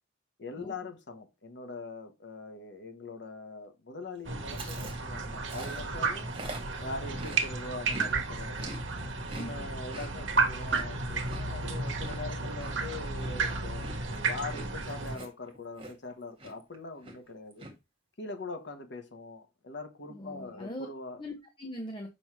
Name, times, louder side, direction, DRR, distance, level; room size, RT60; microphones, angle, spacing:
voice 1, 0.4-6.3 6.8-8.7 9.3-17.7 18.2-21.2, left 3 dB, 60° left, 1.1 m, -42 dB
sound 1, 4.2-15.2, right 4 dB, 65° right, 1.1 m, -33 dB
Chewing mastication, 4.5-8.1 8.4-16.1 16.4-16.7 17.0-17.7, right 2 dB, 30° right, 1.8 m, -45 dB
voice 2, 9.3-9.7 20.1-20.9 21.2-22.1, equal, 25° left, 1.0 m, -41 dB
7.1 x 5.5 x 3.1 m
head